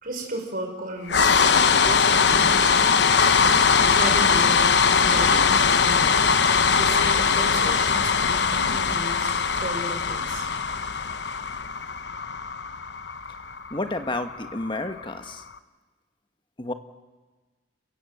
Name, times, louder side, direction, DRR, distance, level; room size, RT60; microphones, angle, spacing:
voice 1, 0.0-1.4 1.8-2.7 3.8-4.6 4.9-6.3 6.7-10.5, right 1 dB, 50° right, 2 dB, 5.2 m, -35 dB
sound 1, 1.1-15.2, left 5 dB, 65° left, 1.0 m, -21 dB
voice 2, 13.7-15.4 16.6-16.7, left 2 dB, 25° left, 8 dB, 1.4 m, -30 dB
30.0 x 17.5 x 7.9 m, 1.3 s
head